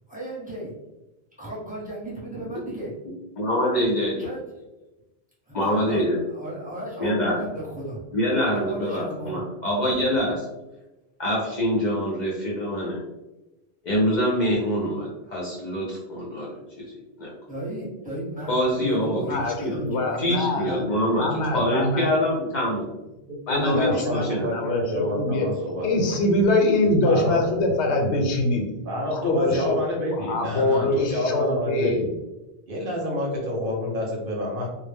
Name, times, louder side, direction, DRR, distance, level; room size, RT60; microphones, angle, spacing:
voice 1, 0.1-0.7 1.4-2.9 4.2-4.6 5.5-8.0 8.5-9.4 17.5-20.3, right 1 dB, 10° right, -7 dB, 0.8 m, -35 dB
voice 2, 3.4-4.2 5.5-6.2 7.0-7.4 8.1-10.4 11.2-13.0 13.8-16.9 17.2-17.3 18.5-19.2 19.6-19.8 20.2-22.8 23.5-24.5, equal, 50° left, -4 dB, 0.6 m, -25 dB
voice 3, 19.3-20.9 21.2-22.1 23.5-25.5 25.8-28.6 29.1-32.0, left 2 dB, 90° left, 2 dB, 0.9 m, -24 dB
voice 4, 23.9-26.2 27.0-27.4 28.8-32.0 32.7-34.7, equal, 60° right, -2 dB, 0.8 m, -28 dB
2.1 x 2.0 x 3.3 m, 1.0 s
omnidirectional pair, 1.1 m